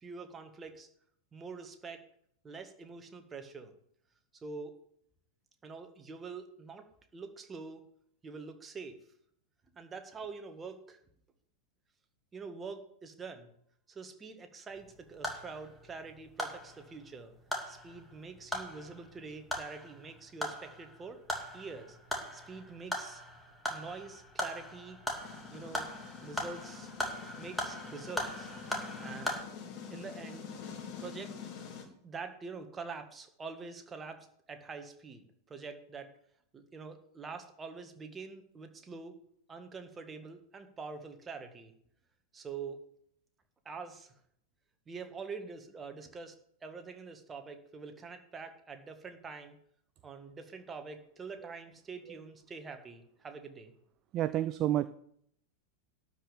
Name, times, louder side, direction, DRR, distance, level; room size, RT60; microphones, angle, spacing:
voice 1, 0.0-0.9 1.3-2.0 2.4-3.7 4.4-4.7 5.6-6.8 7.1-7.8 8.2-9.0 9.7-11.0 12.3-13.5 13.9-17.3 17.7-21.2 21.5-22.0 22.3-23.2 23.7-25.0 25.5-25.9 26.2-26.9 27.4-28.5 29.0-29.3 29.9-30.5 31.0-31.3 32.0-34.2 34.5-36.1 36.5-39.1 39.5-41.7 42.3-42.8 43.6-44.1 44.9-46.3 46.6-49.6 50.0-53.7, right 4 dB, 20° right, 7 dB, 1.7 m, -45 dB
sound 1, 14.7-29.4, equal, 5° left, 2.7 m, -40 dB
sound 2, 25.2-31.8, left 6 dB, 40° left, 2.9 m, -46 dB
voice 2, 54.1-54.9, right 13 dB, 35° right, 14 dB, 0.5 m, -29 dB
12.0 x 5.4 x 8.4 m, 0.69 s
figure-of-eight pair, 90°, 0 cm